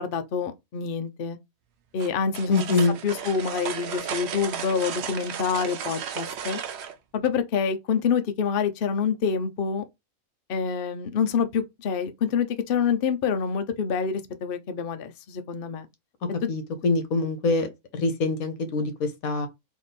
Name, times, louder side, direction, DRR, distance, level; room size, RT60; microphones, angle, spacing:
voice 1, 0.0-1.4 1.9-2.8 3.0-6.6 7.1-9.8 10.5-15.9 16.4-16.5, left 6 dB, 55° left, 0.6 m, -27 dB
sound 1, 2.0-6.9, right 8 dB, 60° right, 0.8 m, -34 dB
voice 2, 2.5-3.0 16.5-17.7 17.9-19.5, left 3 dB, 75° left, 1.3 m, -24 dB
3.5 x 3.0 x 4.0 m
omnidirectional pair, 1.5 m